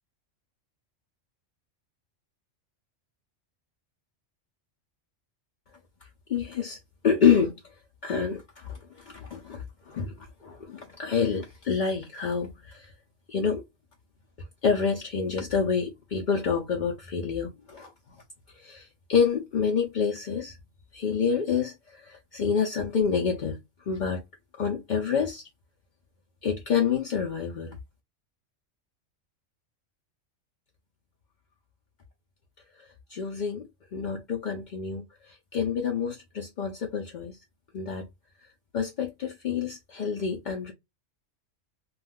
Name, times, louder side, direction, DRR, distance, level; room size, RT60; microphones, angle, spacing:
voice 1, 6.3-6.8 7.0-7.6 8.0-12.9 13.3-13.6 14.6-17.9 18.5-20.6 20.9-23.6 23.9-24.2 24.6-25.4 26.4-27.8 33.1-37.4 37.7-38.1 38.7-40.7, left 6 dB, 60° left, 0.5 m, -28 dB
2.4 x 2.3 x 3.3 m
omnidirectional pair, 1.3 m